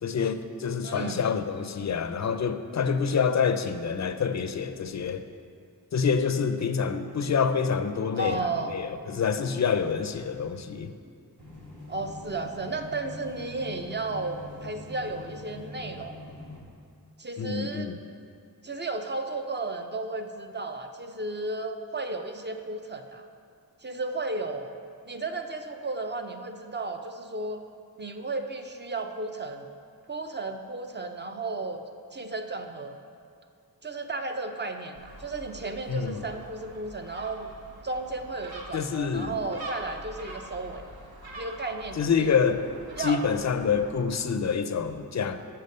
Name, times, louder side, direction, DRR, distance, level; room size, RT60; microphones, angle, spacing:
voice 1, 0.0-5.2 5.9-11.0 17.4-18.0 35.9-36.2 38.7-39.4 42.0-42.6 43.0-45.4, left 6 dB, 45° left, 10 dB, 0.5 m, -27 dB
voice 2, 0.8-1.3 8.1-8.7 11.9-16.2 17.2-17.9 18.6-23.3 23.8-27.6 28.0-29.7 30.1-31.8 32.1-33.0 33.8-37.5 37.8-40.8 41.4-42.4 43.0-43.2, right 3 dB, 30° right, 6 dB, 0.5 m, -34 dB
sound 1, 11.4-16.6, left 2 dB, 55° right, 1.8 m, -44 dB
Gull seagull, 34.9-44.0, right 1 dB, 70° right, 1.0 m, -45 dB
6.7 x 5.7 x 6.5 m, 2.3 s
wide cardioid pair, 100°, 38 cm